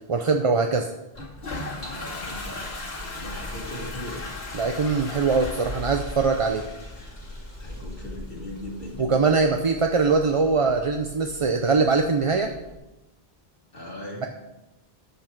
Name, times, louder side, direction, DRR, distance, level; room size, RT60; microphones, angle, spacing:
voice 1, 0.1-0.9 4.5-6.6 9.0-12.5, right 4 dB, 35° right, 4 dB, 0.7 m, -22 dB
Toilet flush, 1.1-12.7, left 2 dB, 85° left, 2.5 m, -39 dB
voice 2, 1.8-4.3 7.6-9.1 13.7-14.3, left 1 dB, 60° left, -3 dB, 2.0 m, -39 dB
sound 1, 2.3-9.0, left 1 dB, 15° right, 2.2 m, -40 dB
13.5 x 8.5 x 4.5 m, 0.99 s
omnidirectional pair, 1.0 m